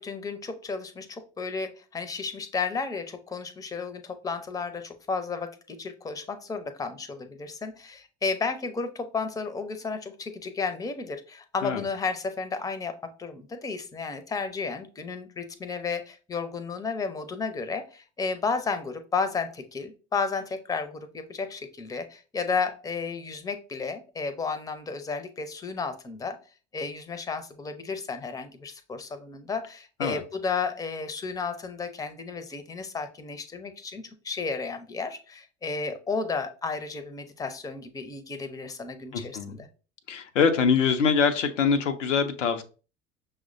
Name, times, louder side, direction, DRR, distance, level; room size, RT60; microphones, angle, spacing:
voice 1, 0.0-26.4 26.7-39.7, left 4 dB, 10° left, 9 dB, 0.5 m, -33 dB
voice 2, 39.1-39.6 40.1-42.6, left 6 dB, 90° left, 7 dB, 0.5 m, -24 dB
5.8 x 2.1 x 2.5 m, 0.36 s
hypercardioid pair, 65°, 36 cm